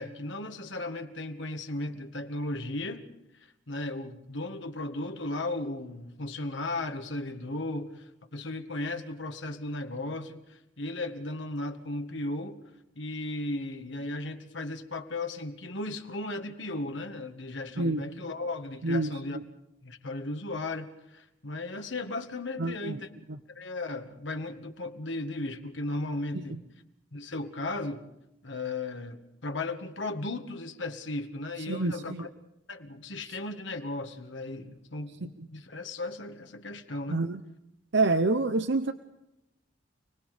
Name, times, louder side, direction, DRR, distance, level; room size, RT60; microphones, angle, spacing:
voice 1, 0.0-3.1 3.7-12.6 13.0-19.4 19.8-23.1 23.6-26.6 27.1-28.0 28.4-32.3 32.7-37.2, left 2 dB, 70° left, 1.9 m, -36 dB
voice 2, 18.8-19.4 22.6-23.0 26.3-26.6 31.7-32.3 33.3-33.4 35.2-35.3 37.1-37.4 37.9-38.9, right 2 dB, 65° right, 0.9 m, -28 dB
29.5 x 20.0 x 5.1 m
head